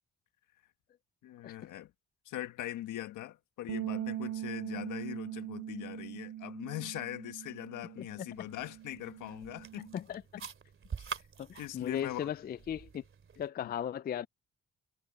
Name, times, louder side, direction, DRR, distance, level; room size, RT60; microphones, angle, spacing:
voice 1, 1.2-1.9 2.2-10.0 11.6-12.3 13.6-13.7, left 14 dB, 85° left, 1.5 m, -41 dB
sound 1, 3.7-9.9, right 12 dB, 60° right, 0.5 m, -41 dB
sound 2, 8.3-13.5, right 6 dB, 45° right, 2.7 m, -47 dB
voice 2, 11.4-13.0 13.4-14.3, left 9 dB, 30° left, 0.4 m, -37 dB
cardioid pair, 90°, 30 cm